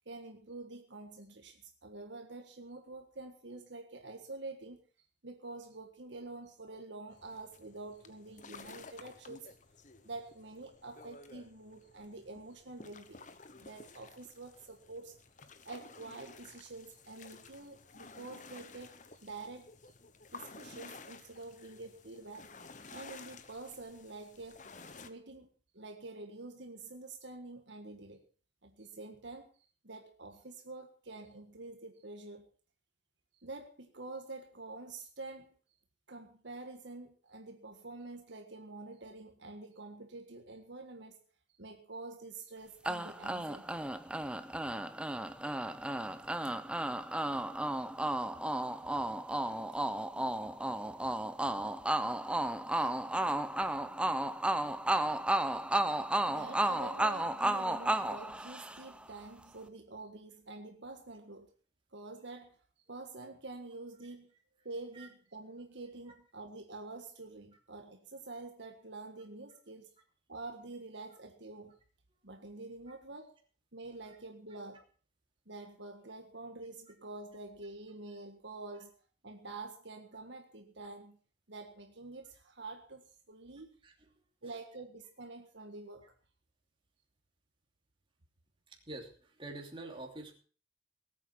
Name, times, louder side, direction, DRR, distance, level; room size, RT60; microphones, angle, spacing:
voice 1, 0.1-4.8 5.2-9.5 10.0-13.3 13.6-15.2 15.7-19.0 19.2-19.7 20.3-22.5 22.9-24.7 25.0-25.5 25.7-28.2 28.6-29.5 29.8-32.5 33.4-35.6 36.1-41.2 41.6-43.8 46.4-46.5 56.3-61.5 61.9-62.6 62.9-64.3 64.6-69.9 70.3-71.8 72.2-73.4 73.7-74.8 75.5-78.9 79.2-81.2 81.5-83.7 84.4-86.1, right 2 dB, 65° right, 4 dB, 1.6 m, -47 dB
sound 1, 7.1-25.1, left 4 dB, 40° left, 1.1 m, -54 dB
sound 2, 42.8-59.0, right 1 dB, 5° right, 0.6 m, -33 dB
voice 2, 88.7-90.3, right 2 dB, 25° right, 1 dB, 2.9 m, -46 dB
19.0 x 8.5 x 5.9 m, 0.40 s
head